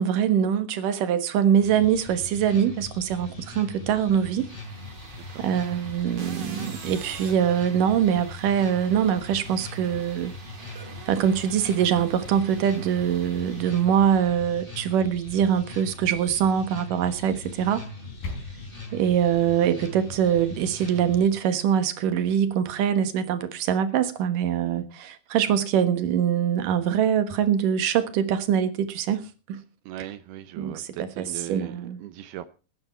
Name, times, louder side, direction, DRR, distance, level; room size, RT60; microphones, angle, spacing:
voice 1, 0.0-4.5 5.4-10.3 10.7-17.9 18.9-29.2 29.5-29.6 30.6-32.0, right 8 dB, 65° right, 2.8 m, -23 dB
sound 1, 1.6-21.3, left 2 dB, 15° left, 4.2 m, -41 dB
sound 2, 4.2-14.4, right 5 dB, 45° right, 3.4 m, -46 dB
sound 3, 17.8-18.8, left 4 dB, 70° left, 6.6 m, -37 dB
voice 2, 29.9-32.5, right 12 dB, 80° right, 2.8 m, -39 dB
19.5 x 9.8 x 4.4 m
omnidirectional pair, 4.5 m